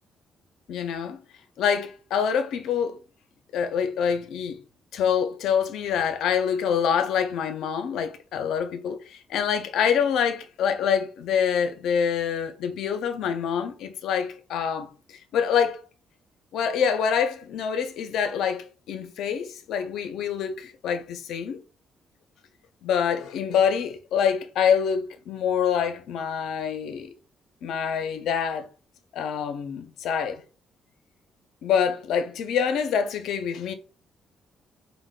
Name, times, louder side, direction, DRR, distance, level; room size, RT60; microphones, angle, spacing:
voice 1, 0.7-1.2 1.6-3.0 3.5-4.6 4.9-14.9 15.3-15.8 16.5-21.6 22.8-27.1 27.6-28.7 29.1-30.4 31.6-33.7, left 7 dB, 80° left, 0.4 m, -26 dB
3.4 x 2.1 x 2.3 m
cardioid pair, 90°, 0 cm